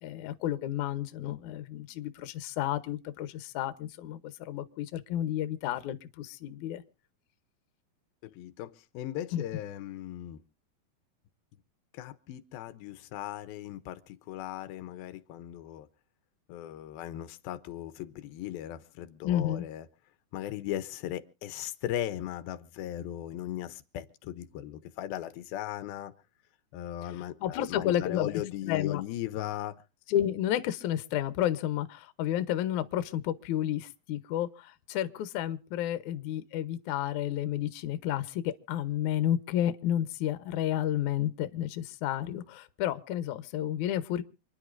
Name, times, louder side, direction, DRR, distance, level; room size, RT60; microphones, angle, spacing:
voice 1, 0.0-6.8 9.3-9.4 19.2-19.7 27.0-27.1 27.4-29.0 30.1-44.2, left 11 dB, 70° left, 2.1 m, -31 dB
voice 2, 8.2-10.4 11.9-15.9 16.5-19.9 20.3-26.1 26.7-29.8, left 12 dB, 85° left, 2.6 m, -38 dB
28.0 x 10.5 x 2.6 m
omnidirectional pair, 4.2 m